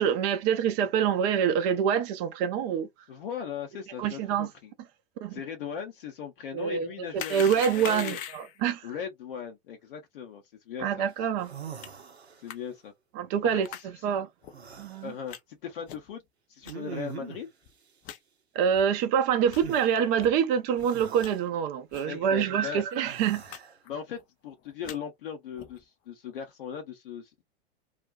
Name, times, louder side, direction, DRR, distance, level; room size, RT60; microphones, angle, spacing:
voice 1, 0.0-2.9 4.0-4.5 5.2-5.4 6.5-6.9 7.1-8.9 10.8-11.5 13.2-13.7 14.0-14.3 14.8-15.1 18.6-23.4, right 8 dB, 30° right, 0.5 m, -26 dB
voice 2, 3.1-4.7 5.3-7.4 7.7-8.2 8.8-10.9 11.2-11.3 12.4-12.9 13.4-14.1 15.0-16.2 16.5-17.5 22.1-22.8 23.9-27.4, left 7 dB, 60° left, 0.7 m, -38 dB
sound 1, 7.2-8.6 11.8-11.9 12.5-12.6 13.6-13.9 14.4-14.5 15.3-15.4 15.9-16.1 16.6-16.7 17.3-17.4 17.7-17.8 18.0-18.2 18.7-18.9 19.4-19.7 20.2-20.3 20.8-21.3 21.9-22.1 22.4-22.5 22.8-23.0 23.5-23.6 23.9-24.2 24.6-25.0 25.6-25.8, left 10 dB, 25° left, 0.4 m, -41 dB
sound 2, 11.1-11.2 11.4-12.6 14.5-15.1 16.6-17.5 19.6-19.9 20.8-21.4 23.0-23.8, right 7 dB, 85° right, 0.6 m, -42 dB
2.4 x 2.2 x 2.4 m
figure-of-eight pair, 90°, 31 cm